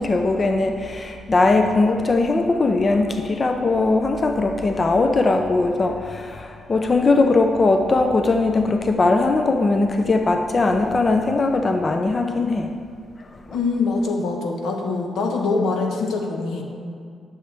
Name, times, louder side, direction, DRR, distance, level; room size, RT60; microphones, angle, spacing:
voice 1, 0.0-12.7 13.5-13.6, left 3 dB, 35° left, 5 dB, 0.5 m, -20 dB
voice 2, 13.5-16.6, left 3 dB, 85° left, 2 dB, 1.0 m, -23 dB
10.5 x 6.2 x 3.4 m, 2.3 s
cardioid pair, 90°, 0 cm